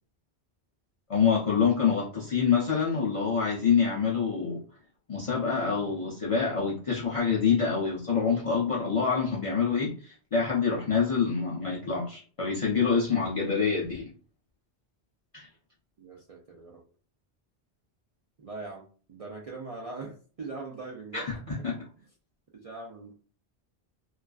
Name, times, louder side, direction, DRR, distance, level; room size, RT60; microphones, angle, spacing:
voice 1, 1.1-4.6 5.1-14.1 15.3-15.5 21.1-21.9, left 6 dB, 50° left, 0.4 m, -26 dB
voice 2, 16.0-16.8 18.4-21.6 22.0-22.1 22.5-23.1, right 3 dB, 55° right, 0.4 m, -41 dB
2.3 x 2.3 x 2.3 m
omnidirectional pair, 1.1 m